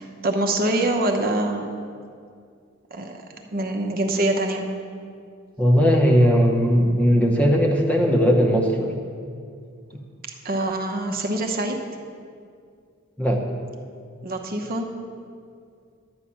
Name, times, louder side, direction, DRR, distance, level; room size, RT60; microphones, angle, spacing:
voice 1, 0.0-1.8 2.9-3.2 3.5-4.7 10.4-11.8 14.2-14.9, right 1 dB, 45° right, 2 dB, 0.9 m, -25 dB
voice 2, 5.6-8.9 13.2-13.4, equal, 5° left, 1 dB, 0.9 m, -18 dB
11.5 x 5.7 x 8.6 m, 2.2 s
head